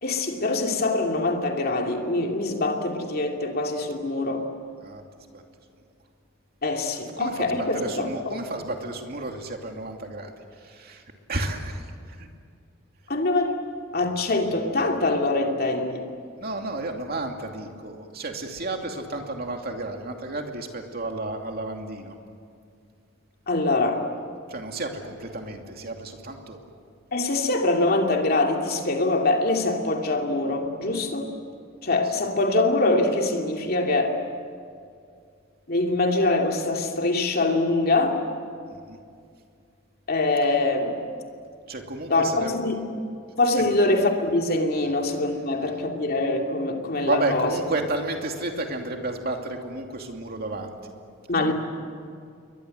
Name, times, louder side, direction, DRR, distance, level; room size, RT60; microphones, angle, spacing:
voice 1, 0.0-4.5 6.6-8.4 13.1-13.6 13.9-16.1 23.5-24.0 27.1-31.3 31.8-34.1 35.7-38.2 40.1-41.0 42.1-42.8 43.4-47.5 51.3-51.5, left 2 dB, 45° left, 2 dB, 2.7 m, -24 dB
voice 2, 7.2-12.3 16.4-22.1 24.5-26.6 32.0-32.1 38.7-39.0 41.7-42.5 43.5-43.6 44.8-44.9 47.0-50.9 51.4-51.5, right 2 dB, 45° right, 3 dB, 2.7 m, -32 dB
28.5 x 23.0 x 8.0 m, 2.3 s
head